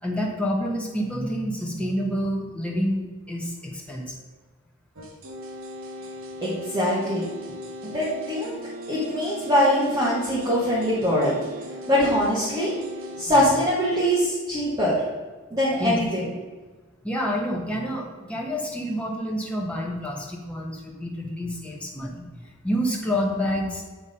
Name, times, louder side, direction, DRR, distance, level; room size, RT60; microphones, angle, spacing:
voice 1, 0.0-4.2 15.8-16.0 17.0-23.8, equal, 5° left, -2 dB, 1.0 m, -28 dB
sound 1, 4.9-13.2, equal, 70° right, 1.1 m, -38 dB
voice 2, 6.4-7.2 7.8-8.5 8.9-11.3 11.9-12.7 13.2-15.0 15.5-16.2, equal, 15° right, -9 dB, 1.5 m, -22 dB
8.6 x 3.5 x 5.4 m, 1.3 s
head